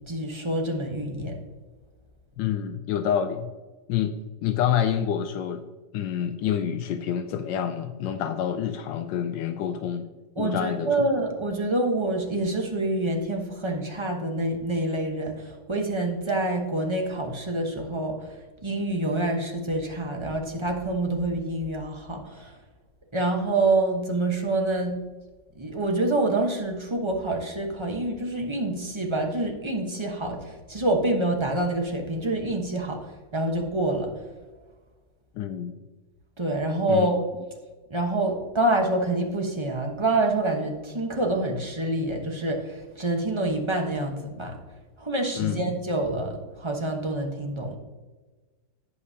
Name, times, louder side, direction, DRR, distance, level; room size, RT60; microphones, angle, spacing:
voice 1, 0.1-1.4 10.4-18.3 18.6-22.5 23.1-25.0 25.5-34.1 36.4-37.2 37.9-44.6 45.0-47.8, right 2 dB, 20° right, 2 dB, 0.8 m, -27 dB
voice 2, 2.4-3.5 3.9-4.1 4.4-5.6 5.9-10.1 10.4-10.9 35.4-35.7 36.9-37.1 45.4-45.7, left 9 dB, 80° left, 8 dB, 1.2 m, -27 dB
17.0 x 5.7 x 2.8 m, 1.3 s
omnidirectional pair, 2.0 m